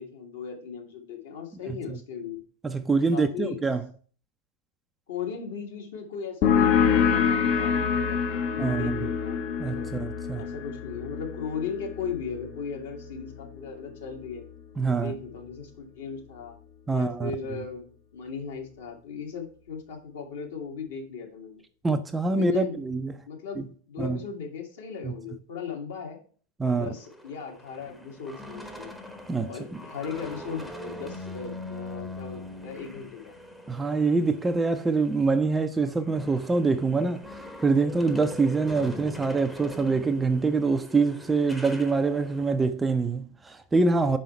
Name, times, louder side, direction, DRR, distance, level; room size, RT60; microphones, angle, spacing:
voice 1, 0.0-2.4 3.1-3.6 5.1-9.9 10.3-14.4 14.9-16.5 16.9-17.8 18.1-21.6 22.3-22.8 23.3-26.2 26.7-28.9 29.5-33.3, left 6 dB, 60° left, 1.8 m, -37 dB
voice 2, 2.6-3.9 8.6-9.0 9.6-10.4 14.8-15.1 16.9-17.3 21.8-23.1 23.6-23.7 24.0-24.2 25.0-25.1 26.6-26.9 29.3-29.6 33.7-44.2, right 4 dB, 10° right, 0.5 m, -25 dB
sound 1, 6.4-13.7, left 7 dB, 40° left, 0.8 m, -26 dB
sound 2, 26.9-35.3 35.6-42.5, left 1 dB, 5° left, 0.9 m, -42 dB
5.5 x 5.4 x 4.2 m
figure-of-eight pair, 90°, 0 cm